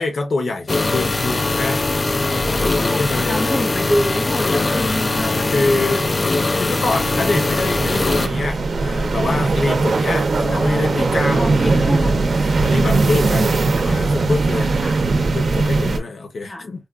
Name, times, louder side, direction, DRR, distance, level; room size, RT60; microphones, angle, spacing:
voice 1, 0.0-3.6 4.4-6.0 6.6-13.4 13.8-14.7 15.3-16.9, left 3 dB, 90° left, 0.8 m, -25 dB
sound 1, 0.7-8.3, left 2 dB, 40° left, 0.4 m, -21 dB
sound 2, 1.5-1.6 1.9-16.0, right 3 dB, 80° right, 0.6 m, -21 dB
voice 2, 2.7-6.6 10.1-12.3 12.9-13.8 14.8-15.0 16.5-16.7, equal, 25° left, 0.8 m, -28 dB
4.2 x 2.3 x 2.4 m
wide cardioid pair, 125°, 0 cm